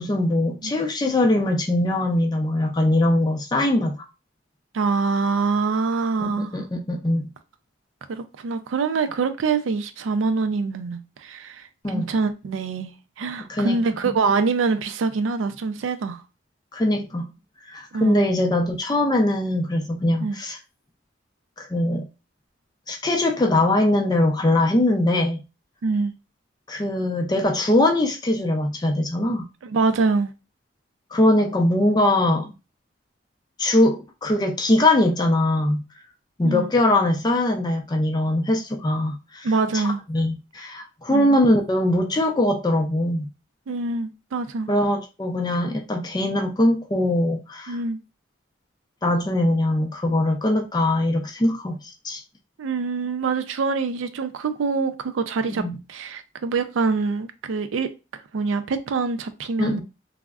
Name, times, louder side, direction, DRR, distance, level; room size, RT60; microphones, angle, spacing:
voice 1, 0.0-4.0 6.2-7.3 11.8-12.1 13.5-13.8 14.0-14.1 16.7-17.3 17.7-20.6 21.6-22.1 22.9-25.4 26.7-29.5 31.1-32.5 33.6-35.8 36.4-39.5 39.7-39.8 40.1-43.3 44.7-47.8 49.0-52.2 55.5-55.8 59.6-59.8, left 1 dB, 20° left, 0.4 m, -21 dB
voice 2, 4.7-6.6 8.1-16.2 17.9-18.2 20.2-20.4 25.8-26.1 29.6-30.3 36.4-36.7 39.4-40.0 41.1-41.4 43.7-44.7 47.7-48.0 52.6-55.6 55.9-57.9 58.3-59.8, right 4 dB, 80° right, 0.4 m, -25 dB
3.4 x 2.0 x 2.3 m
head